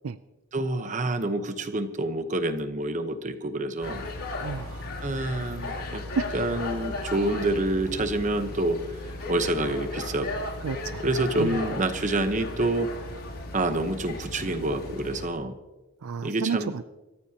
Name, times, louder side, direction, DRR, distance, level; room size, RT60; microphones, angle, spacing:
voice 1, 0.5-4.0 5.0-6.0 6.3-8.8 9.3-10.3 11.0-12.9 13.5-15.5 16.2-16.7, right 2 dB, 35° right, 8 dB, 1.0 m, -27 dB
sound 1, 3.8-15.3, left 2 dB, 85° left, 3.0 m, -35 dB
voice 2, 4.4-4.9 6.2-6.3 10.6-11.0 11.4-11.6 16.0-16.8, right 5 dB, 75° right, 12 dB, 0.5 m, -30 dB
27.5 x 14.5 x 2.9 m, 1.1 s
head